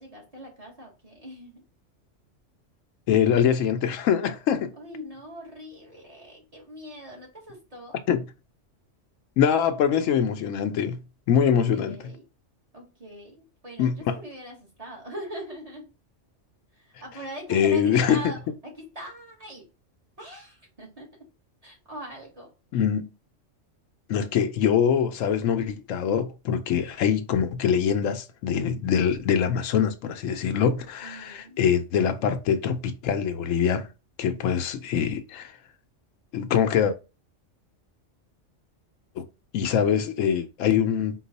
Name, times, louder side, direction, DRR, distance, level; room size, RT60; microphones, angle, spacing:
voice 1, 0.0-1.6 4.7-8.0 11.3-11.4 11.7-12.2 12.7-15.9 16.8-19.7 20.2-21.3 21.6-22.5 31.0-31.6, right 1 dB, 30° right, 1.3 m, -42 dB
voice 2, 3.1-4.7 8.1-8.2 9.4-11.0 11.3-12.1 13.8-14.2 17.5-18.3 22.7-23.1 24.1-33.9 34.2-35.5 36.3-37.0 39.2-39.3 39.5-41.1, left 8 dB, 85° left, 1.0 m, -24 dB
4.5 x 2.4 x 4.0 m
omnidirectional pair, 1.3 m